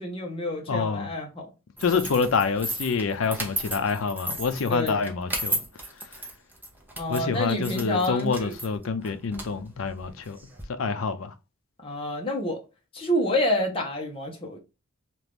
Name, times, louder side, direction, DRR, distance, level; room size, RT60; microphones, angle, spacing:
voice 1, 0.0-1.5 4.7-5.0 7.0-8.5 11.8-12.6 12.9-14.6, left 1 dB, 25° left, 0.9 m, -28 dB
voice 2, 0.7-1.1 1.8-5.6 7.1-10.4 10.7-11.3, left 5 dB, 65° left, 0.5 m, -27 dB
sound 1, 1.8-10.6, right 1 dB, 10° right, 0.6 m, -35 dB
2.9 x 2.5 x 3.4 m
head